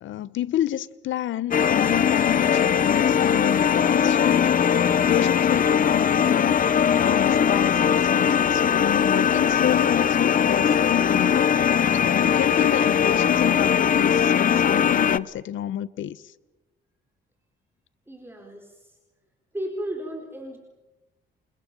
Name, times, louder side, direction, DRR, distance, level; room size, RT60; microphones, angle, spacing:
voice 1, 0.0-4.5 5.0-6.6 7.0-11.5 11.9-16.2, left 12 dB, 75° left, 0.9 m, -29 dB
sound 1, 1.5-15.2, left 8 dB, 45° left, 0.8 m, -20 dB
voice 2, 18.1-19.0 19.5-20.6, right 1 dB, 10° right, 4.4 m, -34 dB
29.0 x 24.5 x 6.9 m
cardioid pair, 90°, 20 cm